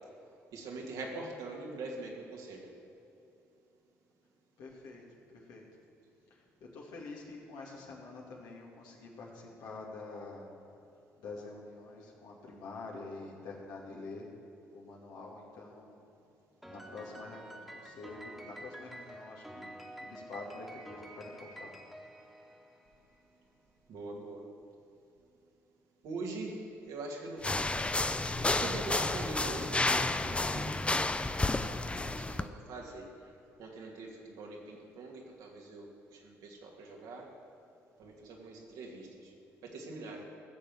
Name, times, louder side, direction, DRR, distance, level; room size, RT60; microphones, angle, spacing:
voice 1, 0.5-2.7 23.9-24.4 26.0-27.9 28.2-30.8 31.4-33.3 33.6-37.3 38.0-39.3 39.6-40.2, right 2 dB, 70° right, -1 dB, 2.4 m, -43 dB
voice 2, 4.6-5.0 5.3-5.6 6.6-10.5 11.2-14.3 14.7-16.0 16.7-21.7, left 3 dB, 70° left, -2 dB, 2.5 m, -47 dB
Piano, 16.6-23.1, right 1 dB, ahead, 2.0 m, -49 dB
sound 1, 27.4-32.4, left 2 dB, 15° left, 0.6 m, -31 dB
15.0 x 6.8 x 8.1 m, 2.8 s
hypercardioid pair, 50°, 7 cm